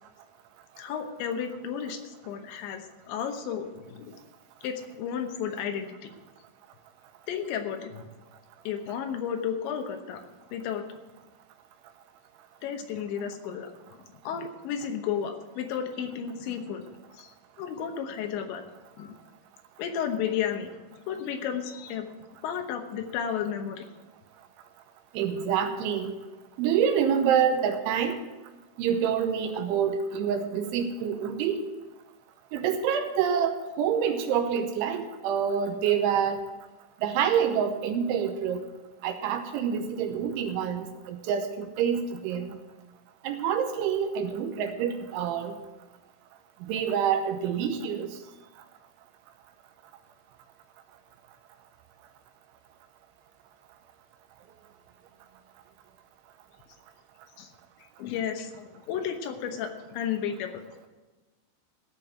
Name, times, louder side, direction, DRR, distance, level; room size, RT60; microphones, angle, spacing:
voice 1, 0.8-4.1 4.6-6.1 7.3-8.0 8.6-10.2 10.5-10.9 12.6-13.7 14.2-16.9 17.1-17.3 17.6-18.6 19.0-19.1 19.8-20.7 21.0-22.1 22.4-23.9 57.4-57.5 58.0-60.6, left 8 dB, 75° left, 6 dB, 3.2 m, -33 dB
voice 2, 25.1-26.1 26.6-28.2 28.8-31.6 32.5-36.4 37.0-38.6 39.0-42.6 43.2-45.5 46.7-48.1, right 8 dB, 80° right, 6 dB, 3.2 m, -27 dB
15.5 x 5.3 x 9.0 m, 1.2 s
omnidirectional pair, 5.6 m